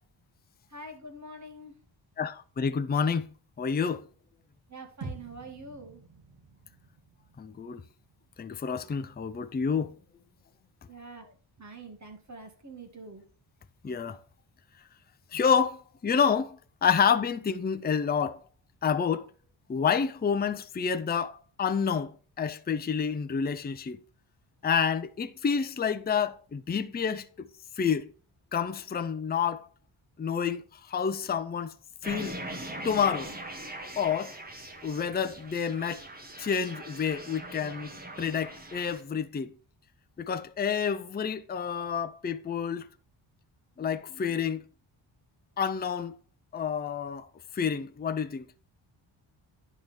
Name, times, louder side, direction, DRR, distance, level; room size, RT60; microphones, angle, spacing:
voice 1, 0.7-1.7 4.7-6.0 10.9-13.2, right 2 dB, 35° right, 2.1 m, -45 dB
voice 2, 2.2-3.3 3.6-4.0 7.4-7.8 8.4-9.9 13.8-14.2 15.3-18.4 18.8-19.3 19.7-24.0 24.6-27.5 27.8-28.1 28.5-29.7 30.2-31.7 32.0-32.4 32.8-33.3 34.0-34.3 34.8-36.0 36.4-37.9 38.2-39.5 40.2-42.9 43.8-44.6 45.6-46.2 46.5-47.3 47.5-48.5, left 6 dB, 20° left, 0.5 m, -29 dB
sound 1, 5.0-9.4, right 3 dB, 60° right, 4.0 m, -47 dB
sound 2, 32.0-39.0, right 1 dB, 20° right, 1.4 m, -41 dB
10.5 x 3.7 x 6.3 m
cardioid pair, 105°, 47 cm